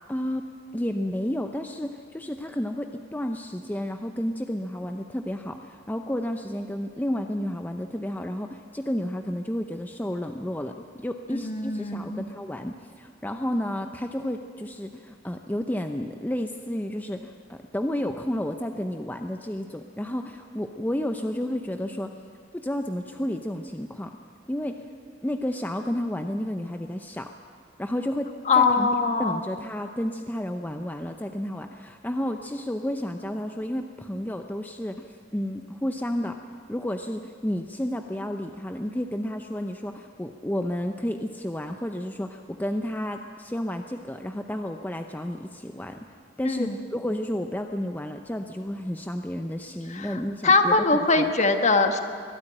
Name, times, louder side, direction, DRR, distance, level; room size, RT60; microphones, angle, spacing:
voice 1, 0.1-0.5 0.7-22.1 22.5-24.1 24.5-24.8 25.2-27.3 27.8-28.9 29.2-36.4 36.7-46.1 46.4-50.8 51.2-51.3, left 1 dB, 10° left, 6 dB, 0.7 m, -31 dB
voice 2, 11.3-12.2 28.5-29.4 46.4-46.8 49.9-52.0, left 3 dB, 40° left, 6 dB, 1.4 m, -22 dB
22.0 x 13.0 x 10.0 m, 2.1 s
head